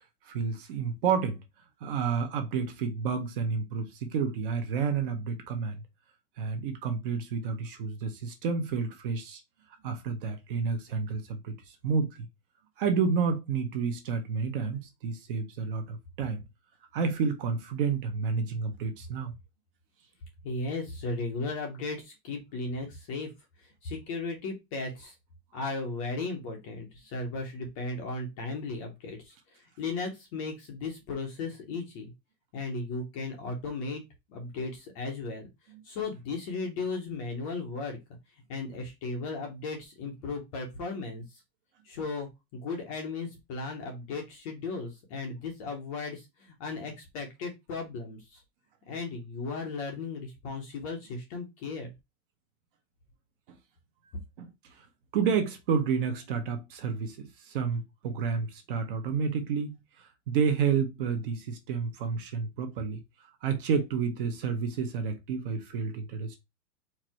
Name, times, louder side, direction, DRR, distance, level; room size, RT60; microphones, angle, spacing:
voice 1, 0.3-1.4 1.8-5.8 6.4-9.4 9.8-12.3 12.8-16.4 16.9-19.3 53.5-53.6 54.4-54.5 54.8-54.9 55.1-63.0 63.4-66.4, right 5 dB, 35° right, 0.7 m, -30 dB
voice 2, 20.4-23.3 23.6-25.2 25.5-32.1 32.5-34.0 34.3-38.0 38.3-41.4 41.8-48.4 48.9-51.9, left 3 dB, 20° left, 0.6 m, -36 dB
4.6 x 2.6 x 4.3 m
supercardioid pair, 175°, 48 cm